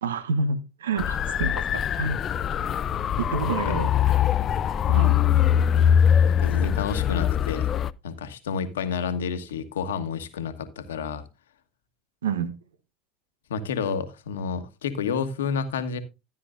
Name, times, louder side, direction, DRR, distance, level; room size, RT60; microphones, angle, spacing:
voice 1, 0.0-2.2 3.2-3.9 4.9-5.2 12.2-12.5, right 4 dB, 90° right, 13 dB, 0.9 m, -28 dB
sound 1, 1.0-7.9, left 9 dB, 45° left, 0.5 m, -22 dB
voice 2, 3.4-3.8 6.2-7.7 8.0-11.2 13.5-16.0, left 6 dB, 85° left, 9 dB, 1.2 m, -30 dB
13.0 x 9.5 x 2.5 m, 0.24 s
hypercardioid pair, 75°, 0 cm